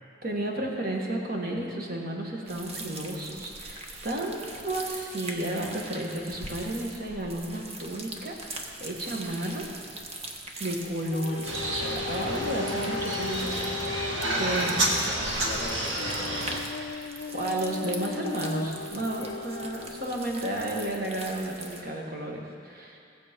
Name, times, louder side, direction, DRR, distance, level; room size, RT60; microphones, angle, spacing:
voice 1, 0.2-8.4 8.8-9.7 10.6-14.8 17.3-23.0, right 1 dB, 50° right, 0 dB, 1.7 m, -32 dB
sound 1, 2.5-21.8, right 2 dB, 35° right, 1.0 m, -42 dB
sound 2, 11.1-20.2 20.9-21.0, left 5 dB, 60° left, 0.3 m, -37 dB
sound 3, 11.4-16.6, right 1 dB, 85° right, 1.5 m, -30 dB
voice 2, 14.1-16.6 19.2-19.4, left 1 dB, 25° left, -1 dB, 1.9 m, -40 dB
17.0 x 7.6 x 5.3 m, 2.4 s
head